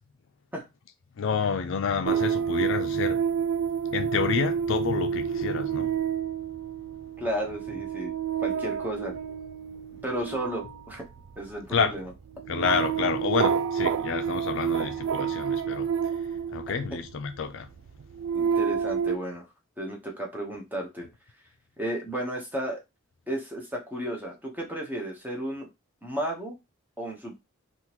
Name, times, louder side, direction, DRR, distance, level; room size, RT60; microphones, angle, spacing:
voice 1, 1.2-3.3 3.9-6.0 11.7-11.9 12.5-15.9 16.5-17.7, left 6 dB, 65° left, 0.4 m, -29 dB
sound 1, 2.1-17.2 17.8-19.2, right 7 dB, 70° right, 0.3 m, -29 dB
voice 2, 7.2-8.1 8.4-9.1 10.0-11.0 11.4-12.1 18.3-19.5 19.8-21.1 21.8-22.8 23.3-25.7 26.0-26.6 27.0-27.3, right 1 dB, 10° right, 0.9 m, -33 dB
3.6 x 2.5 x 2.9 m
head